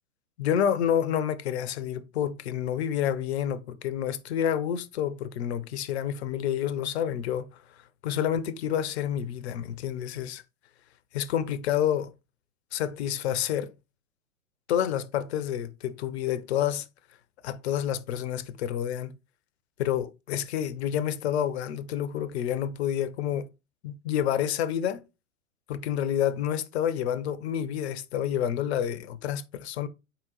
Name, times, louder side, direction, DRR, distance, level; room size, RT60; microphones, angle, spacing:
voice 1, 0.4-7.5 8.0-10.4 11.1-12.1 12.7-13.7 14.7-16.9 17.4-19.1 19.8-23.5 23.8-25.0 25.7-29.9, left 9 dB, 50° left, 0.6 m, -29 dB
4.4 x 3.7 x 3.0 m
figure-of-eight pair, 100°, 42 cm